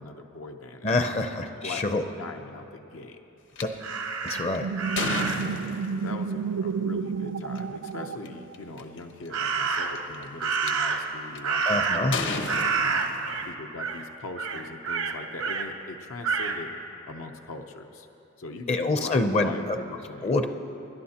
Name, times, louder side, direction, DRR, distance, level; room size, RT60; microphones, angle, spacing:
voice 1, 0.0-1.9 2.2-3.2 5.3-16.7 17.1-18.1 18.4-20.3, left 3 dB, 85° left, 4 dB, 0.8 m, -41 dB
voice 2, 0.8-2.0 3.6-3.7 4.2-4.8 11.6-12.2 18.7-19.8 20.2-20.5, left 2 dB, 30° left, 7 dB, 0.5 m, -26 dB
sound 1, 3.6-3.7 4.3-6.1 7.4-7.6 8.2-8.3 8.5-9.0 9.7-10.7 11.3-11.6 12.1-13.5, left 3 dB, 60° left, 0.9 m, -33 dB
Crow, 3.8-5.6 9.3-10.1 10.4-12.2 12.5-13.5 13.8-14.0 14.4-15.7 16.2-16.6, right 5 dB, 85° right, 1.1 m, -28 dB
sound 2, 4.3-8.8, right 5 dB, 70° right, 0.3 m, -31 dB
27.0 x 11.5 x 2.9 m, 2.9 s
head